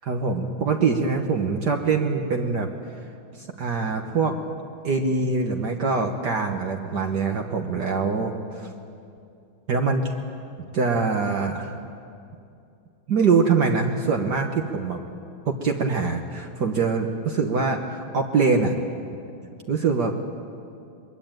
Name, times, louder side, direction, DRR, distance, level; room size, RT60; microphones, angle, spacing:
voice 1, 0.0-2.7 3.6-4.4 4.8-8.7 9.7-10.1 10.7-11.7 13.1-15.0 15.5-18.7 19.7-20.1, right 4 dB, 55° right, 2 dB, 1.7 m, -23 dB
22.5 x 22.0 x 9.0 m, 2.5 s
omnidirectional pair, 2.3 m